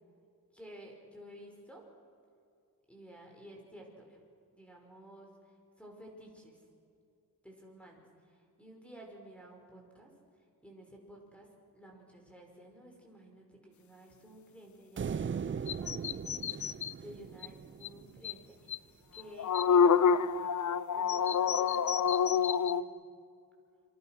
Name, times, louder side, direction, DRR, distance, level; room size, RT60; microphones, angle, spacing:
voice 1, 0.5-1.8 2.9-4.2 4.6-6.6 7.4-10.1 10.6-16.4 17.0-18.6 19.1-20.5 20.9-22.9, equal, 5° left, 0 dB, 5.3 m, -53 dB
sound 1, 15.0-18.3, right 7 dB, 30° right, 0.5 m, -39 dB
sound 2, 15.7-16.9 17.4-17.5 17.8-17.9 18.2-18.3 18.7-18.8 19.1-22.8, left 7 dB, 50° left, 0.6 m, -27 dB
28.5 x 25.0 x 6.0 m, 2.4 s
wide cardioid pair, 115°, 38 cm